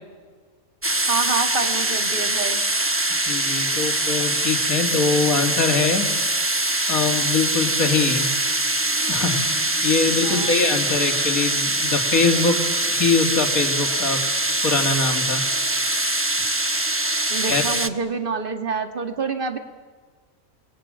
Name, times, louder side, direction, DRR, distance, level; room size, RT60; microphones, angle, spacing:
sound 1, 0.8-17.9, right 1 dB, 10° right, 0.9 m, -23 dB
voice 1, 1.1-2.7 10.1-10.7 17.3-19.6, right 4 dB, 40° right, 6 dB, 2.1 m, -27 dB
voice 2, 3.2-6.1 6.9-8.3 9.1-14.2 14.6-15.4 17.5-17.6, left 4 dB, 80° left, 5 dB, 2.9 m, -23 dB
29.5 x 21.5 x 8.9 m, 1.5 s
omnidirectional pair, 1.5 m